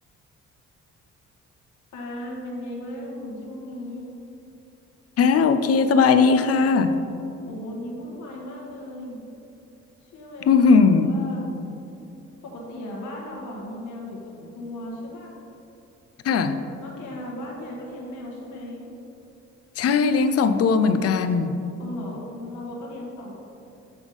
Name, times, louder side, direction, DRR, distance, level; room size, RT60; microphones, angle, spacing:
voice 1, 1.9-4.1 7.4-9.2 10.0-11.5 12.4-15.3 16.3-16.4 16.7-18.8 21.8-23.3, left 1 dB, 80° left, -2 dB, 1.3 m, -36 dB
voice 2, 5.2-7.0 10.5-11.1 16.2-16.5 19.8-21.6, left 5 dB, 55° left, 10 dB, 0.5 m, -18 dB
8.1 x 3.5 x 5.1 m, 2.8 s
cardioid pair, 90°, 30 cm